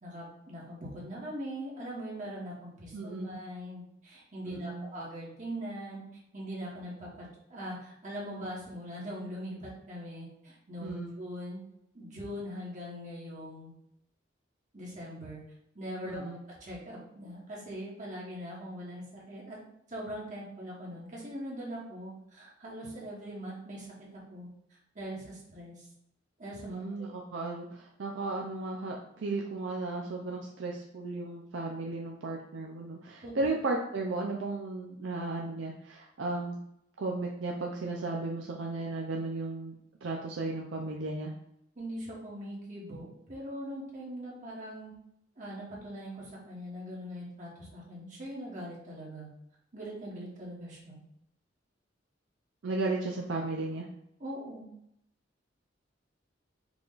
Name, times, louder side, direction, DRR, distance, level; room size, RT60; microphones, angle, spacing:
voice 1, 0.0-6.0 6.3-11.6 11.9-13.7 14.7-15.4 15.7-16.2 16.5-19.6 19.9-23.9 24.1-24.5 24.9-25.8 26.4-27.1 33.2-33.3 41.7-44.9 45.4-49.3 49.7-51.0 54.2-54.7, equal, 40° right, -5 dB, 1.4 m, -41 dB
voice 2, 2.9-3.3 4.4-4.9 10.8-11.1 16.1-16.4 26.7-36.6 37.0-39.7 40.0-41.3 52.6-53.9, right 3 dB, 75° right, -1 dB, 0.5 m, -35 dB
4.8 x 2.5 x 3.8 m, 0.76 s
head